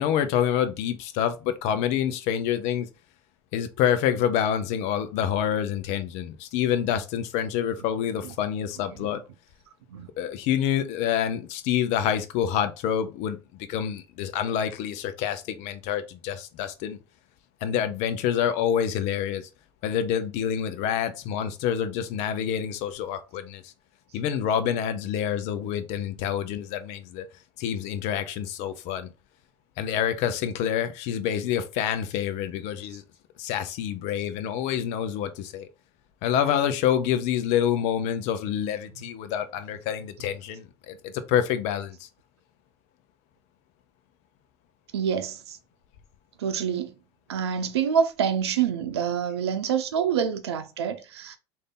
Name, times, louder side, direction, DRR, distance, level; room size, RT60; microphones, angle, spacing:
voice 1, 0.0-2.9 3.5-9.2 10.2-17.0 17.6-19.5 19.8-23.7 24.1-27.2 27.6-29.1 29.8-33.0 33.4-35.7 36.2-42.1, left 9 dB, 55° left, 0.6 m, -27 dB
voice 2, 44.9-45.6 46.4-46.9 47.3-51.4, right 7 dB, 80° right, 0.6 m, -27 dB
3.3 x 2.7 x 3.8 m
hypercardioid pair, 75°, 14 cm